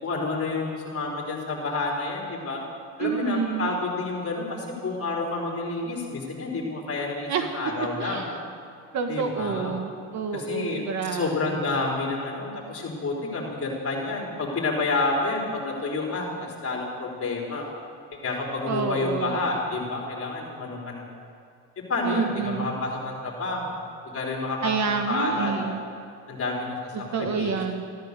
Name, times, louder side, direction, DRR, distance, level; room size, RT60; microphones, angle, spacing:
voice 1, 0.0-2.6 3.0-8.3 9.1-9.7 10.3-17.7 18.2-21.1 21.9-23.7 24.1-25.8 26.3-26.9 27.2-27.5, left 3 dB, 35° left, -1 dB, 4.2 m, -29 dB
voice 2, 3.0-3.7 7.3-7.4 8.0-8.3 8.9-11.6 18.6-19.5 22.0-22.7 24.6-25.8 26.9-28.0, right 5 dB, 50° right, 5 dB, 1.6 m, -28 dB
14.5 x 13.0 x 6.8 m, 2.3 s
cardioid pair, 100°, 37 cm